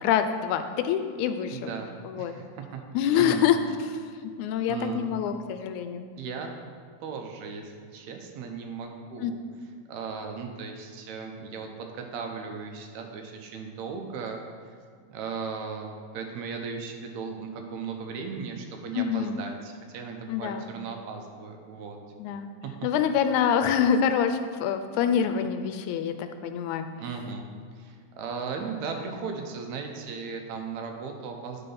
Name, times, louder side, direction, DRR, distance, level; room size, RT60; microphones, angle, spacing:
voice 1, 0.0-1.6 2.1-2.3 2.9-3.6 4.4-6.0 9.2-9.3 19.0-19.4 20.3-20.7 22.2-22.5 22.8-26.9, left 8 dB, 90° left, 8 dB, 2.0 m, -25 dB
voice 2, 1.5-2.6 3.1-3.5 4.7-5.1 6.2-6.5 7.0-9.4 9.9-14.4 15.1-22.0 22.6-22.7 27.0-27.5 27.8-31.6, right 5 dB, 80° right, 3 dB, 2.0 m, -37 dB
9.3 x 4.2 x 5.5 m, 2.1 s
omnidirectional pair, 3.3 m